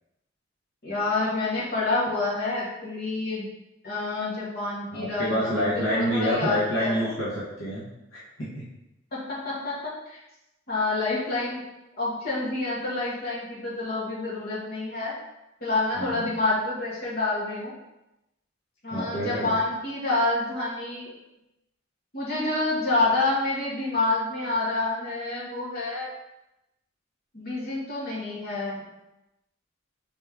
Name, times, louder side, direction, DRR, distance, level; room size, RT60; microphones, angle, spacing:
voice 1, 0.8-3.5 3.8-7.1 9.1-10.2 10.7-11.6 12.0-15.1 15.6-17.7 18.8-21.2 22.1-26.1 27.3-28.8, left 2 dB, 55° left, -7 dB, 1.5 m, -28 dB
voice 2, 4.9-8.7 16.0-16.2 18.9-19.5, equal, 75° left, -8 dB, 1.0 m, -28 dB
4.2 x 3.5 x 3.4 m, 0.93 s
head